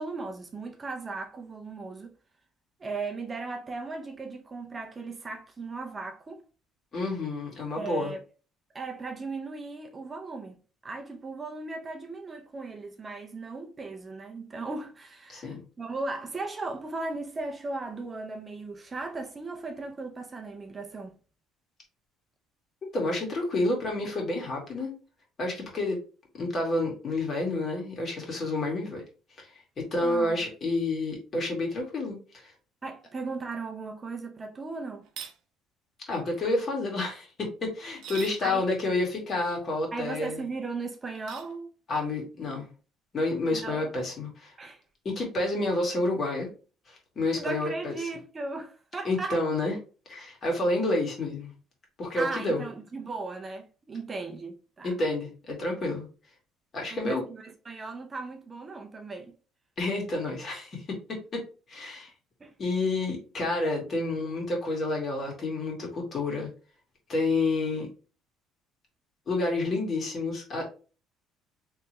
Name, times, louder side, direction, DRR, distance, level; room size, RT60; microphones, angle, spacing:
voice 1, 0.0-2.1 2.8-6.4 7.8-8.2 8.7-10.6 10.8-21.2 30.0-30.4 32.8-35.1 38.4-38.7 39.9-41.7 43.5-43.9 44.6-44.8 47.3-49.4 52.1-55.0 56.9-59.3 62.4-62.5, right 3 dB, 25° right, 0.5 m, -37 dB
voice 2, 6.9-8.1 15.3-15.6 22.9-24.9 25.4-26.0 26.3-29.0 29.4-29.5 29.8-32.5 36.1-40.4 41.9-42.7 43.1-44.5 45.1-46.5 46.9-48.0 49.1-49.8 50.1-51.5 52.0-52.6 54.8-56.1 56.7-57.2 59.8-61.4 61.7-62.1 62.6-66.5 67.1-67.9 69.3-70.6, left 2 dB, 40° left, 1.8 m, -29 dB
sound 1, 35.0-35.4 37.9-38.4 41.1-41.5, right 9 dB, 70° right, 0.7 m, -41 dB
3.3 x 3.2 x 3.0 m
cardioid pair, 110°, 0 cm